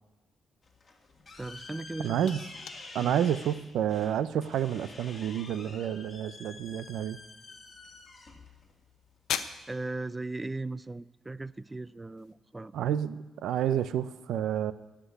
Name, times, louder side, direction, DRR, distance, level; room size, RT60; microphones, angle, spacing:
sound 1, 0.6-9.7, left 3 dB, 30° left, 2.0 m, -48 dB
voice 1, 1.4-2.3 3.0-3.2 9.7-12.7, right 2 dB, 15° right, 19 dB, 0.3 m, -37 dB
sound 2, 1.6-12.4, left 9 dB, 80° left, 0.7 m, -45 dB
voice 2, 2.0-2.4 2.9-7.2 12.7-14.7, right 10 dB, 85° right, 15 dB, 0.5 m, -29 dB
14.5 x 6.0 x 9.6 m, 1.1 s
cardioid pair, 115°, 0 cm